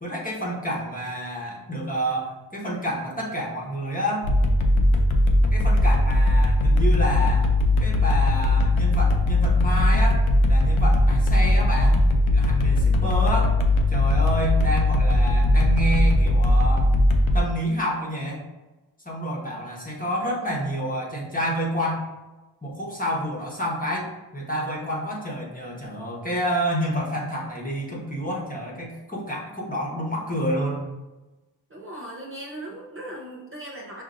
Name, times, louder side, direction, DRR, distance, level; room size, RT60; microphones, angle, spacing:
voice 1, 0.0-4.3 5.5-7.5 7.8-10.2 10.5-12.1 12.3-13.6 13.9-17.0 17.3-18.4 19.0-22.0 22.6-24.1 24.3-30.9, equal, 15° left, -3 dB, 1.0 m, -29 dB
sound 1, 4.2-17.4, left 1 dB, 75° left, 0.6 m, -19 dB
voice 2, 31.7-34.0, right 1 dB, 30° right, -4 dB, 0.6 m, -38 dB
6.2 x 2.6 x 2.5 m, 1.1 s
wide cardioid pair, 85°, 47 cm